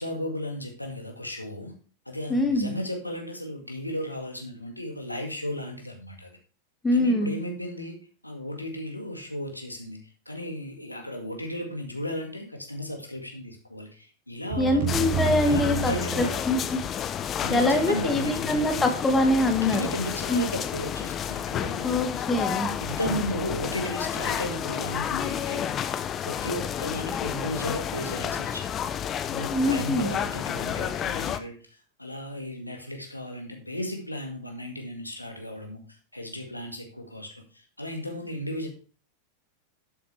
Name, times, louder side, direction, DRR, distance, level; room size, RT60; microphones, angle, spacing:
voice 1, 0.0-1.7 2.1-6.3 6.9-8.0 8.2-10.0 10.3-16.4 17.4-18.9 19.6-22.4 22.8-25.7 26.2-28.7 29.3-38.7, left 1 dB, 85° left, 3 dB, 2.0 m, -35 dB
voice 2, 2.3-2.7 6.8-7.3 14.6-16.8 17.5-19.9 20.3-20.5 21.8-22.7 29.5-30.1, left 1 dB, 15° left, 4 dB, 2.0 m, -24 dB
sound 1, 14.5-16.7, right 7 dB, 60° right, 3.8 m, -30 dB
sound 2, 14.9-31.4, left 9 dB, 30° left, 0.8 m, -31 dB
11.5 x 8.4 x 3.4 m, 0.37 s
figure-of-eight pair, 90°, 0 cm